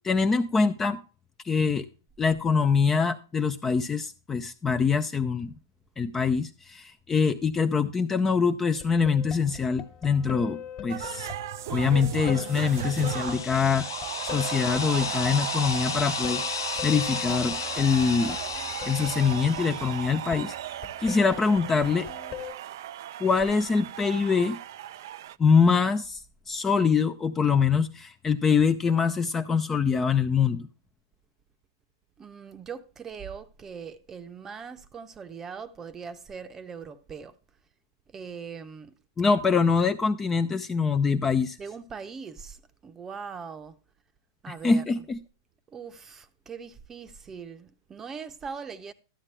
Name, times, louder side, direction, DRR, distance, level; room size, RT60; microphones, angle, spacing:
voice 1, 0.0-1.0 1.4-1.9 2.2-5.5 6.0-11.3 11.7-13.9 14.2-18.4 18.9-20.5 21.0-22.1 23.2-24.6 25.4-26.2 26.5-30.7 39.2-41.6 44.5-45.2, left 5 dB, 15° left, 0.5 m, -24 dB
sound 1, 8.7-22.5, left 9 dB, 30° left, 1.5 m, -42 dB
sound 2, 10.9-25.4, right 12 dB, 60° right, 0.4 m, -36 dB
sound 3, 12.3-20.1, left 9 dB, 80° left, 0.4 m, -35 dB
voice 2, 32.2-37.4 38.1-39.0 41.6-43.8 44.4-45.0 45.7-48.9, right 6 dB, 15° right, 0.8 m, -41 dB
12.5 x 8.8 x 3.3 m
hypercardioid pair, 135°, 2 cm